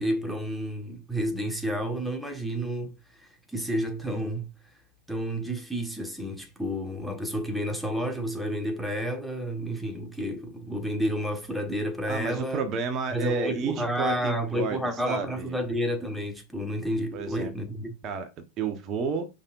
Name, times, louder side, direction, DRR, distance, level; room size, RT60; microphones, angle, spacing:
voice 1, 0.0-4.5 5.1-12.6 13.1-17.9, equal, 5° right, 1.5 m, -30 dB
voice 2, 12.1-15.5 17.1-17.5 18.0-18.3 18.6-19.3, right 5 dB, 40° right, 1.2 m, -31 dB
7.0 x 5.4 x 2.6 m
hypercardioid pair, 95°, 0 cm